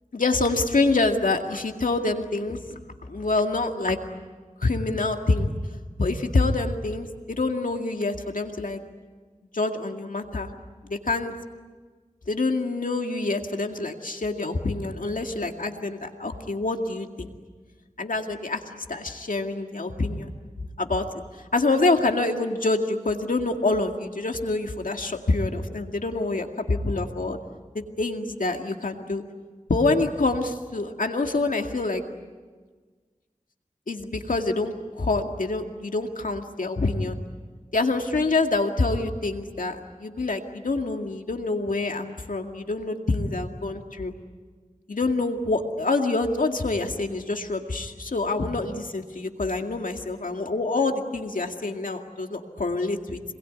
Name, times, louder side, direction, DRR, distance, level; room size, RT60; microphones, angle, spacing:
voice 1, 0.1-4.0 4.6-5.5 6.0-8.8 9.5-10.5 10.8-11.3 12.3-17.3 18.0-20.3 20.8-21.0 21.5-27.4 27.7-29.2 29.7-32.0 33.9-37.2 37.7-44.1 44.9-53.2, left 3 dB, 90° left, 4 dB, 2.2 m, -26 dB
27.0 x 21.5 x 9.5 m, 1.4 s
wide cardioid pair, 40°, 13 cm